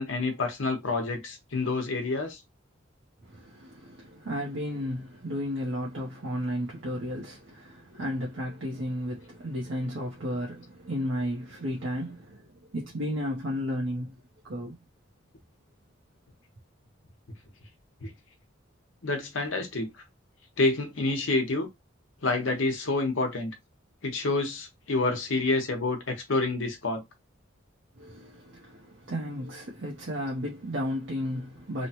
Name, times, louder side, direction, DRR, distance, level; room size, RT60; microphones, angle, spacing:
voice 1, 0.0-2.4 18.0-18.1 19.0-19.9 20.6-21.7 22.2-23.5 24.0-27.0, left 3 dB, 75° left, 0.9 m, -28 dB
voice 2, 3.2-14.8 28.0-31.9, equal, 70° right, 0.7 m, -33 dB
3.0 x 2.1 x 2.8 m
head